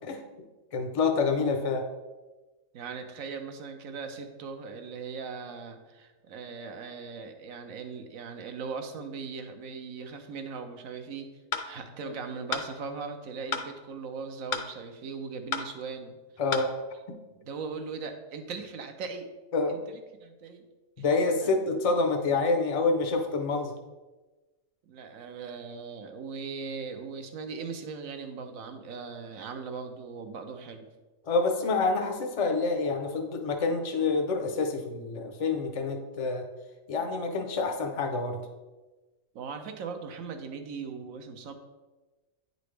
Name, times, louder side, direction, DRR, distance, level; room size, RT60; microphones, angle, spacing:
voice 1, 0.7-1.8 12.0-12.1 16.4-16.7 19.5-19.8 21.0-23.7 31.3-36.5 36.9-38.4, left 3 dB, 40° left, 4 dB, 0.5 m, -27 dB
voice 2, 2.7-11.3 11.6-16.2 17.3-19.3 19.7-20.7 21.0-21.1 21.4-21.6 24.9-30.9 39.3-41.5, right 5 dB, 75° right, 6 dB, 1.1 m, -39 dB
sound 1, 11.5-11.7 12.5-12.7 13.5-13.7 14.5-14.7 15.5-15.7 16.5-16.7, left 7 dB, 70° left, 1.0 m, -31 dB
9.2 x 4.0 x 3.3 m, 1.2 s
omnidirectional pair, 1.4 m